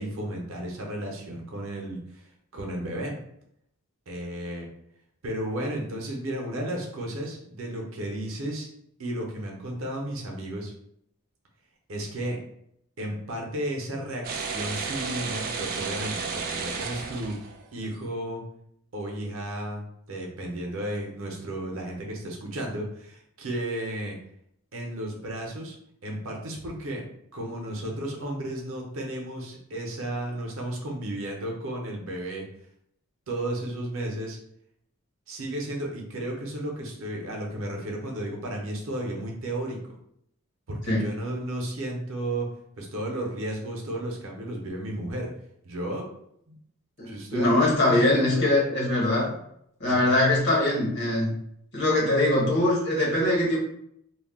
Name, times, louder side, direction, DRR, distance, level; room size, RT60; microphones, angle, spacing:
voice 1, 0.0-3.1 4.1-4.7 5.2-8.7 9.0-10.7 11.9-12.4 13.0-17.4 17.7-18.4 18.9-24.2 24.7-25.7 26.0-27.0 27.3-32.4 33.3-34.4 35.3-39.9 40.7-42.5 42.8-45.3 45.6-46.1 47.0-48.6 49.8-50.2, right 1 dB, 65° right, 0 dB, 0.7 m, -33 dB
sound 1, 14.2-17.9, right 5 dB, 40° right, 0.3 m, -32 dB
voice 2, 47.0-49.3 49.8-51.3 51.7-53.6, left 1 dB, 55° left, -4 dB, 1.1 m, -22 dB
2.3 x 2.2 x 3.5 m, 0.73 s
head